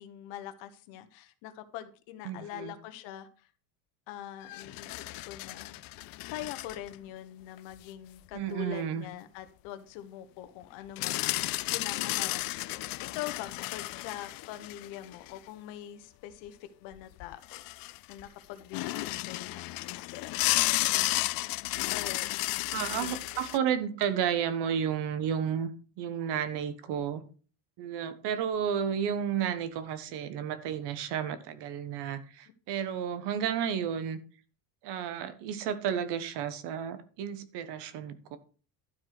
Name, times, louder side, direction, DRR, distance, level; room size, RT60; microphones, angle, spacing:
voice 1, 0.0-3.5 4.1-5.8 6.3-12.4 12.7-17.6 18.1-21.1 21.9-22.3 22.7-23.4, left 11 dB, 75° left, 1.4 m, -43 dB
voice 2, 2.2-2.7 8.3-9.0 22.7-25.7 26.0-27.2 27.8-34.2 34.8-38.4, right 8 dB, 60° right, 1.5 m, -32 dB
sound 1, 4.4-7.0 7.6-7.7 11.0-15.4 16.9-17.0 17.2-18.3 18.7-23.6, left 20 dB, 50° left, 0.5 m, -33 dB
12.5 x 4.6 x 6.0 m
cardioid pair, 125°, 45 cm